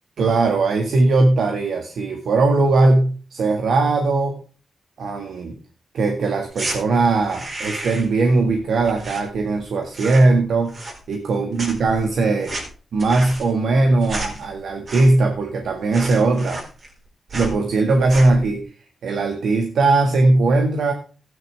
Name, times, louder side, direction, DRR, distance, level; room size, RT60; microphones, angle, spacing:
voice 1, 0.2-4.3 5.0-5.5 5.9-10.8 11.1-12.5 12.9-16.6 17.3-18.6 19.0-20.9, right 3 dB, 80° right, 4 dB, 1.8 m, -19 dB
sound 1, 6.5-6.8 7.2-8.2 8.4-9.6 9.9-10.4 10.7-11.3 11.6-15.3 15.6-15.7 15.9-17.0 17.3-17.6 18.0-18.4, right 2 dB, 45° right, 4.2 m, -32 dB
14.5 x 9.9 x 3.4 m, 0.38 s
cardioid pair, 90°, 0 cm